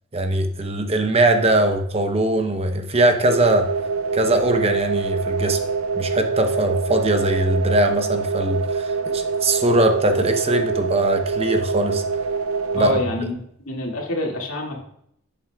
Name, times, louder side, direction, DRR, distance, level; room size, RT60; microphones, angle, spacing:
voice 1, 0.1-3.7 4.1-5.6 5.9-12.0 12.7-12.9, right 1 dB, 30° right, 5 dB, 0.8 m, -21 dB
sound 1, 3.2-13.0, right 5 dB, 85° right, 0.7 m, -25 dB
voice 2, 12.7-13.4 13.7-14.8, left 1 dB, 85° left, 0 dB, 2.2 m, -26 dB
11.0 x 7.2 x 2.4 m, 0.72 s
head